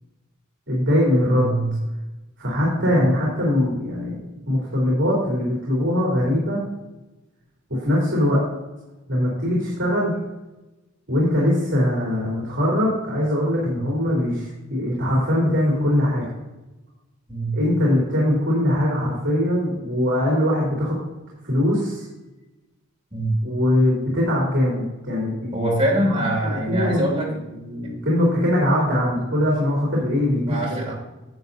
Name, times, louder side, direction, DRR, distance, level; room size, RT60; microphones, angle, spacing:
voice 1, 0.7-1.5 2.4-4.2 4.5-6.6 7.7-8.4 9.1-10.1 11.1-16.2 17.5-21.0 21.4-22.0 23.4-25.7 26.1-26.2 26.4-27.2 27.5-30.6, left 1 dB, 60° right, -5 dB, 3.0 m, -21 dB
voice 2, 1.2-1.8 2.8-3.0 13.6-13.8 17.3-17.6 23.1-23.4 25.5-27.4 30.5-30.9, right 1 dB, 25° right, -3 dB, 3.0 m, -24 dB
11.0 x 7.9 x 2.7 m, 1.0 s
head